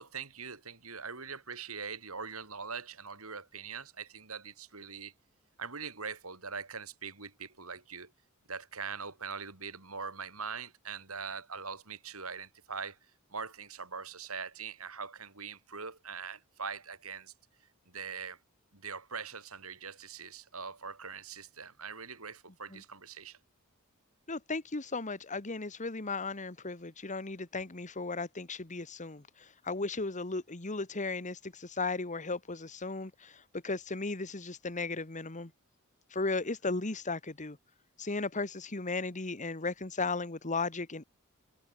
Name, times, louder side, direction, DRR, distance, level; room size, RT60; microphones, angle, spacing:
voice 1, 0.0-5.1 5.6-8.1 8.5-13.0 13.3-17.3 17.9-18.4 18.7-23.4, right 5 dB, 75° right, 7.3 m, -42 dB
voice 2, 24.3-35.5 36.1-37.6 38.0-41.0, left 3 dB, 35° left, 1.7 m, -36 dB
head